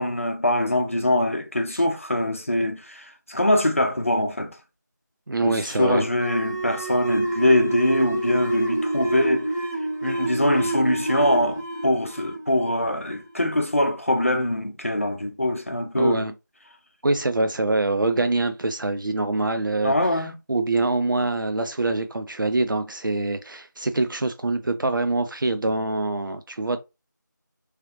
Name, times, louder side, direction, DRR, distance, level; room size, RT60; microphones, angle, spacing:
voice 1, 0.0-4.6 5.4-9.5 10.0-16.2 18.2-18.3 19.8-20.3, left 1 dB, 40° left, 0.6 m, -23 dB
voice 2, 5.3-6.0 16.0-16.3 17.0-26.8, right 2 dB, 80° right, 0.4 m, -25 dB
sound 1, 6.1-13.3, right 2 dB, 10° right, 0.9 m, -27 dB
3.1 x 3.0 x 2.4 m
figure-of-eight pair, 175°, 11 cm